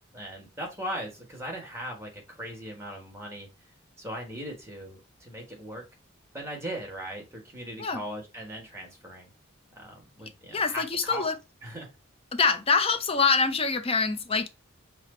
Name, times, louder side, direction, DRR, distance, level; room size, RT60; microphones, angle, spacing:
voice 1, 0.0-3.5 4.0-5.8 6.3-9.3 9.7-11.3 11.6-11.9, equal, 10° right, 1.4 m, -39 dB
voice 2, 10.5-11.4 12.3-14.5, left 4 dB, 25° left, 0.6 m, -25 dB
5.9 x 2.1 x 4.2 m
head